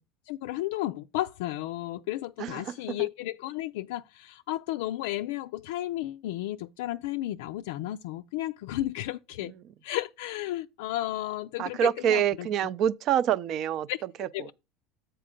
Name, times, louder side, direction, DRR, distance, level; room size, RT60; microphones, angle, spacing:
voice 1, 0.3-9.5 9.8-12.5 13.9-14.0 14.3-14.5, left 15 dB, 80° left, 0.3 m, -33 dB
voice 2, 2.4-2.7 3.0-3.1 11.6-13.9 14.2-14.5, right 10 dB, 50° right, 0.5 m, -26 dB
7.6 x 4.4 x 5.0 m
supercardioid pair, 125°, 0 cm